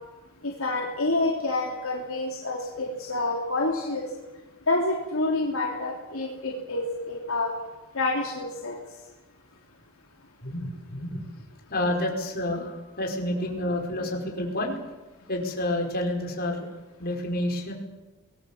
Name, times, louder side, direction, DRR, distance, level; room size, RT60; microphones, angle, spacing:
voice 1, 0.4-4.1 4.7-7.5 7.9-8.8, left 2 dB, 65° left, -1 dB, 3.4 m, -28 dB
voice 2, 10.4-11.2 11.7-14.8 15.3-16.7 17.0-17.7, left 1 dB, 45° left, 1 dB, 4.9 m, -29 dB
26.0 x 20.5 x 7.4 m, 1.1 s
head